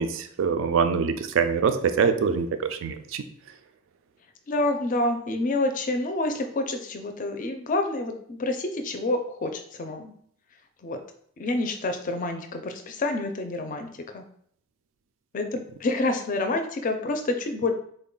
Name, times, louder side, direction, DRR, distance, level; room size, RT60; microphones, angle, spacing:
voice 1, 0.0-3.2, right 6 dB, 70° right, 0.3 m, -24 dB
voice 2, 4.5-10.1 10.8-11.0 11.4-13.9 14.1-14.2 15.3-17.7, left 2 dB, 40° left, 0.4 m, -28 dB
3.6 x 2.2 x 3.8 m
head